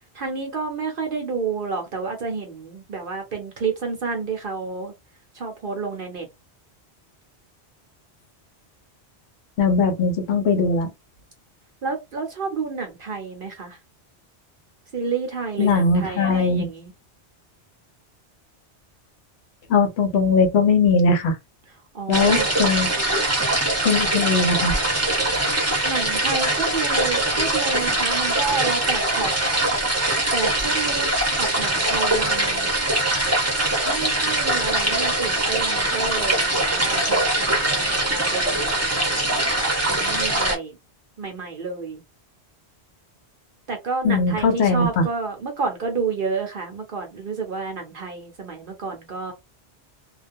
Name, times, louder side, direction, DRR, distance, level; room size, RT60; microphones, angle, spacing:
voice 1, 0.1-4.9 5.3-6.3 11.8-13.8 14.9-16.9 21.9-22.5 25.8-29.3 30.3-32.7 33.8-39.6 39.9-40.7 41.2-42.0 43.7-49.3, right 4 dB, 55° right, 0.8 m, -30 dB
voice 2, 9.6-10.9 15.6-16.7 19.7-21.4 22.1-22.9 23.8-24.7 44.0-45.1, left 4 dB, 70° left, 0.9 m, -20 dB
sound 1, 22.1-40.6, right 1 dB, 15° right, 0.7 m, -22 dB
2.3 x 2.2 x 2.5 m
omnidirectional pair, 1.1 m